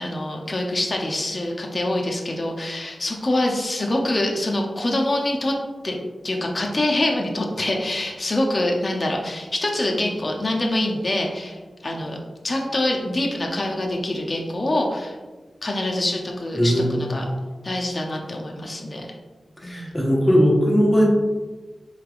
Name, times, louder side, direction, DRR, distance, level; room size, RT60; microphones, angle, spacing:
voice 1, 0.0-5.6 5.8-6.0 6.2-12.2 12.4-15.2 15.6-17.2 17.6-19.1 19.6-20.0, left 1 dB, 45° left, 0 dB, 0.6 m, -25 dB
voice 2, 16.5-17.0 19.6-21.0, equal, 10° left, -4 dB, 1.3 m, -18 dB
4.6 x 3.2 x 2.5 m, 1.3 s
cardioid pair, 50°, 0 cm